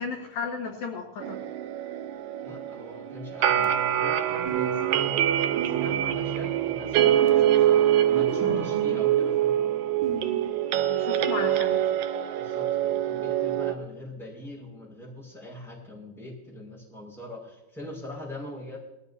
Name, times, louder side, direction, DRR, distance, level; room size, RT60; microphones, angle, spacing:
voice 1, 0.0-1.4 7.0-7.5 8.4-8.7 10.9-11.8, left 5 dB, 70° left, 0 dB, 3.3 m, -35 dB
sound 1, 1.2-13.7, right 11 dB, 75° right, 2.2 m, -25 dB
voice 2, 2.4-5.2 5.5-7.7 8.1-9.7 12.3-18.8, left 1 dB, ahead, -3 dB, 5.2 m, -42 dB
sound 2, 4.4-6.7 7.0-10.5, right 6 dB, 55° right, 3.6 m, -36 dB
19.5 x 15.0 x 2.8 m, 0.90 s
omnidirectional pair, 4.4 m